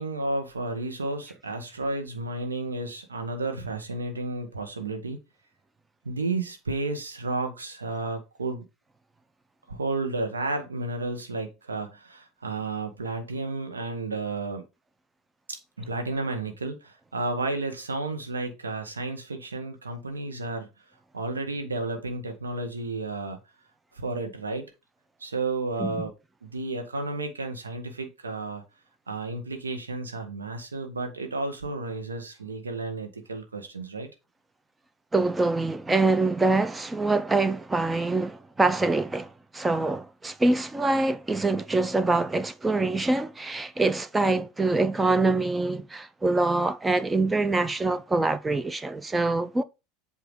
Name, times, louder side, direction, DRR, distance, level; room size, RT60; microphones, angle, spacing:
voice 1, 0.0-5.2 6.0-8.6 9.7-14.6 15.5-20.7 21.1-23.4 23.9-24.7 25.2-26.1 26.4-28.6 29.1-34.1, right 3 dB, 80° right, 1.0 m, -32 dB
voice 2, 35.1-49.6, right 2 dB, 15° right, 0.4 m, -25 dB
7.7 x 2.8 x 4.7 m
figure-of-eight pair, 75°, 0 cm